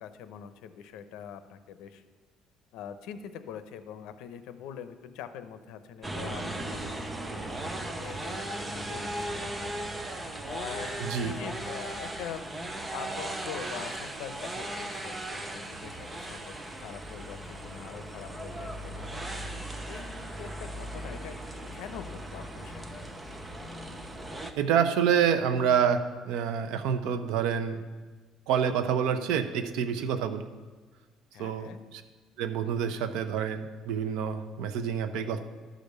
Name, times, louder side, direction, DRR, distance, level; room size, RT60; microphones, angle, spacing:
voice 1, 0.0-2.0 2.7-9.5 10.5-12.4 12.9-19.1 19.4-21.4 21.7-23.0 31.3-31.8, left 9 dB, 80° left, 11 dB, 0.7 m, -44 dB
sound 1, 6.0-24.5, right 1 dB, 10° right, 0.7 m, -37 dB
voice 2, 11.0-11.3 24.6-27.8 28.5-30.4 31.4-32.0 32.4-35.4, right 7 dB, 90° right, 10 dB, 0.8 m, -27 dB
12.5 x 5.2 x 6.7 m, 1.4 s
cardioid pair, 160°, 0 cm